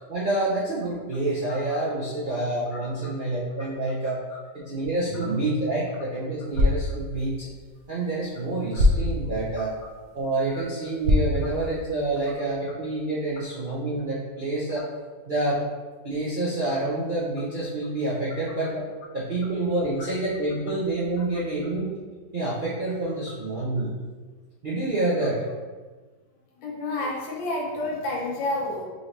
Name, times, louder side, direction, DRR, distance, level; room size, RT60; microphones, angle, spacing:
voice 1, 0.1-4.2 4.7-7.5 7.9-9.7 10.1-14.9 15.3-15.6 16.0-18.9 19.1-21.9 22.3-23.9 24.6-25.4, right 2 dB, 60° right, -7 dB, 0.5 m, -27 dB
voice 2, 1.5-1.8 2.7-3.1 3.6-3.7 8.7-8.8 9.6-9.7 10.5-10.6 14.7-14.8 20.0-20.1 20.7-20.8 21.2-21.3 25.2-25.3 26.5-28.8, left 2 dB, 80° left, -2 dB, 1.6 m, -31 dB
sound 1, 6.4-12.4, left 1 dB, 90° right, 1.4 m, -27 dB
5.4 x 2.9 x 3.2 m, 1.4 s
omnidirectional pair, 2.0 m